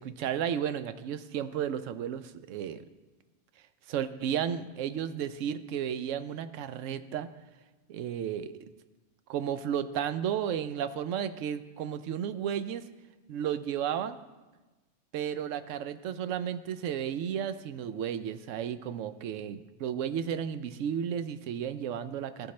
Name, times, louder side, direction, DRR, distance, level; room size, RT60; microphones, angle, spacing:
voice 1, 0.0-2.8 3.9-7.3 7.9-8.5 9.3-12.8 13.3-14.2 15.1-22.5, right 9 dB, 90° right, 12 dB, 0.9 m, -33 dB
14.0 x 9.9 x 3.2 m, 1.2 s
omnidirectional pair, 1.3 m